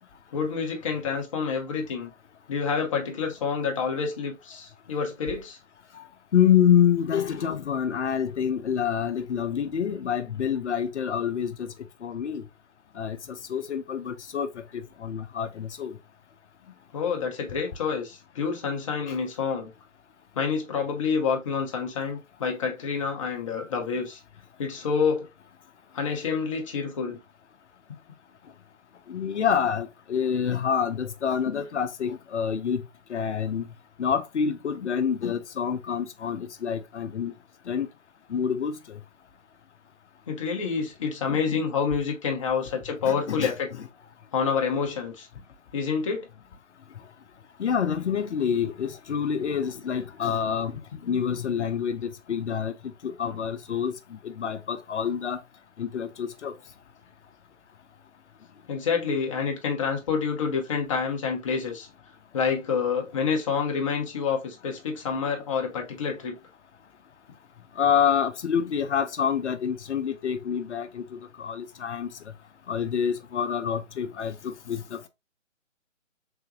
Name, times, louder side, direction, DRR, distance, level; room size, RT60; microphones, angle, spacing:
voice 1, 0.3-2.1 2.5-5.6 16.9-19.7 20.4-24.2 24.6-25.3 25.9-27.2 40.3-43.7 44.3-45.3 45.7-46.3 58.7-61.9 62.3-66.4, left 6 dB, 25° left, 0.8 m, -28 dB
voice 2, 6.3-11.7 12.0-12.4 13.0-13.2 13.5-15.9 19.1-19.2 29.1-32.8 33.1-33.6 34.0-37.3 37.7-37.9 38.3-39.0 41.3-41.6 43.1-43.5 47.6-52.7 53.0-53.9 54.2-55.4 55.8-56.5 67.8-72.1 72.7-75.1, left 8 dB, 60° left, 0.6 m, -27 dB
3.8 x 3.4 x 2.8 m
figure-of-eight pair, 150°, 39 cm